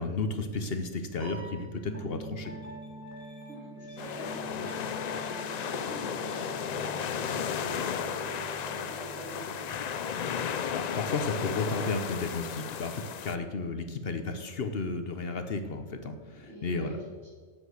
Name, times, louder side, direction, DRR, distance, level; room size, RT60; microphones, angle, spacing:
voice 1, 0.0-2.5 10.7-17.0, left 3 dB, 55° left, 7 dB, 1.0 m, -33 dB
Piano, 1.2-2.7, right 4 dB, 60° right, 3.8 m, -48 dB
Piano 2, 1.8-11.5, right 1 dB, 15° right, 2.4 m, -45 dB
voice 2, 3.2-10.2 16.4-17.3, equal, 85° right, -4 dB, 3.6 m, -46 dB
sound 1, 4.0-13.4, left 8 dB, 75° left, 0.4 m, -34 dB
8.1 x 7.6 x 7.9 m, 1.5 s
omnidirectional pair, 1.3 m